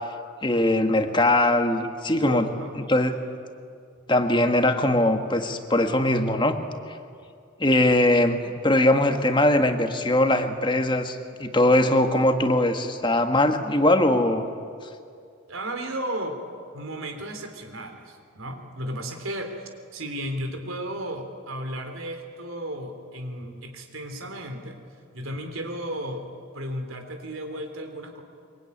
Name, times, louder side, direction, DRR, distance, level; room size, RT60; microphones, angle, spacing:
voice 1, 0.4-2.4 2.9-3.1 4.1-6.6 7.6-8.4 8.6-14.4, left 1 dB, 20° left, 6 dB, 1.5 m, -21 dB
voice 2, 2.2-2.7 15.5-16.4 16.7-24.8 25.1-26.2 26.5-28.2, right 1 dB, 75° right, 5 dB, 3.5 m, -34 dB
24.0 x 23.5 x 9.8 m, 2.4 s
head